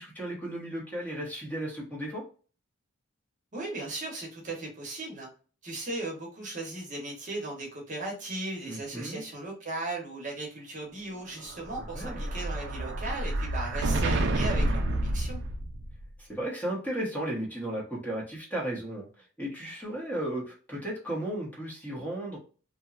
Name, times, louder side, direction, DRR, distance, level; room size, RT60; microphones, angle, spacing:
voice 1, 0.0-2.2 8.7-9.2 11.9-12.3 16.2-19.1 19.4-22.4, right 1 dB, 10° left, -3 dB, 0.9 m, -34 dB
voice 2, 3.5-5.3 5.6-15.4, right 2 dB, 40° right, -1 dB, 0.9 m, -37 dB
Explosion, 11.4-16.0, right 1 dB, 55° right, 0.4 m, -29 dB
2.8 x 2.2 x 2.4 m, 0.37 s
head